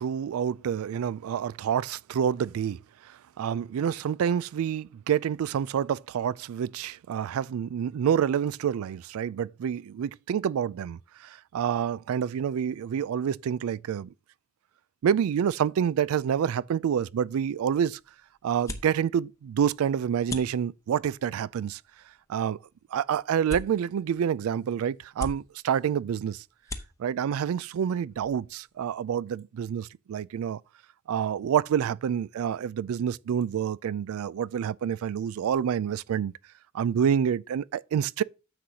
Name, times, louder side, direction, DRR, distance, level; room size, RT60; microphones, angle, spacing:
voice 1, 0.0-2.8 3.4-14.1 15.0-18.0 18.4-21.8 22.3-22.6 22.9-26.4 27.0-30.6 31.1-36.3 36.7-38.2, right 8 dB, 75° right, 0.3 m, -28 dB
sound 1, 17.2-28.8, left 2 dB, 15° left, 0.8 m, -45 dB
10.0 x 7.7 x 2.8 m
head